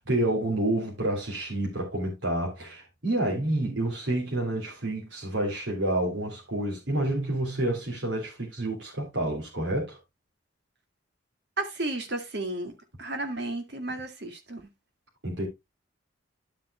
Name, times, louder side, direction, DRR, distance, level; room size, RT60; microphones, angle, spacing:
voice 1, 0.0-10.0 15.2-15.5, right 1 dB, 80° right, 3.1 m, -29 dB
voice 2, 11.6-14.6, right 2 dB, 60° right, 2.1 m, -33 dB
11.5 x 7.4 x 2.2 m
head